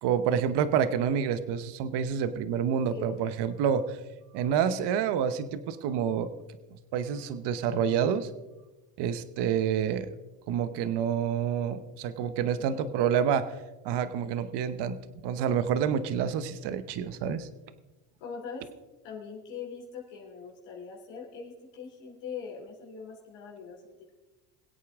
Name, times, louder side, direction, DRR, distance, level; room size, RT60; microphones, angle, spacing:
voice 1, 0.0-4.0 4.3-6.3 6.9-8.3 9.0-10.1 10.5-13.4 13.8-17.5, right 8 dB, 60° right, 12 dB, 1.1 m, -28 dB
voice 2, 12.3-13.1 18.2-18.6 19.0-24.2, left 6 dB, 70° left, -2 dB, 3.2 m, -42 dB
22.5 x 8.4 x 3.6 m, 1.1 s
supercardioid pair, 100°, 45 cm